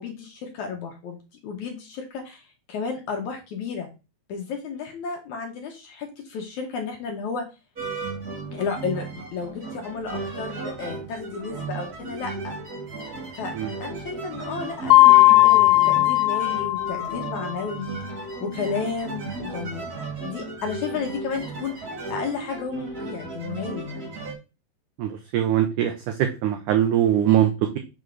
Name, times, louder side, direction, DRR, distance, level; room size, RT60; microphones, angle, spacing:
voice 1, 0.0-3.9 4.3-7.5 8.5-12.6 13.4-13.5 13.8-18.0 18.4-19.8 20.2-21.8 22.1-24.2, left 5 dB, 65° left, 2 dB, 2.0 m, -32 dB
sound 1, 7.7-24.3, right 3 dB, 35° right, 1.6 m, -35 dB
Mallet percussion, 14.9-17.5, left 19 dB, 90° left, 2.0 m, -16 dB
voice 2, 25.0-27.8, right 11 dB, 85° right, 6 dB, 1.7 m, -22 dB
6.8 x 3.7 x 6.2 m, 0.29 s
omnidirectional pair, 4.5 m